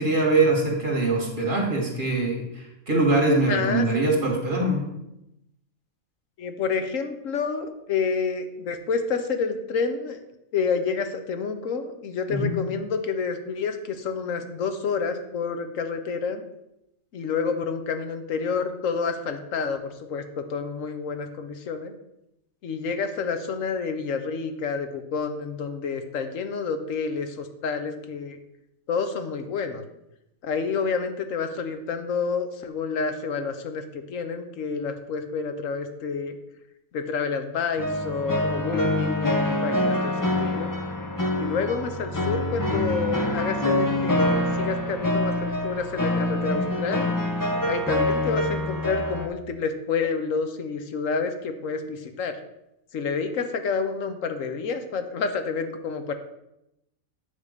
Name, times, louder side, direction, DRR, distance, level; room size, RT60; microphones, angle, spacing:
voice 1, 0.0-4.8 12.3-12.6, right 2 dB, 35° right, -2 dB, 2.4 m, -23 dB
voice 2, 3.5-3.9 6.4-10.2 10.5-16.4 17.1-21.9 22.6-28.4 28.9-29.8 30.4-36.4 36.9-40.7 41.4-44.2 44.5-47.1 47.7-52.3 52.9-56.1, left 5 dB, 70° left, 7 dB, 1.3 m, -29 dB
sound 1, 37.8-49.3, left 1 dB, 20° left, 0.6 m, -25 dB
9.6 x 3.7 x 6.6 m, 0.86 s
omnidirectional pair, 1.4 m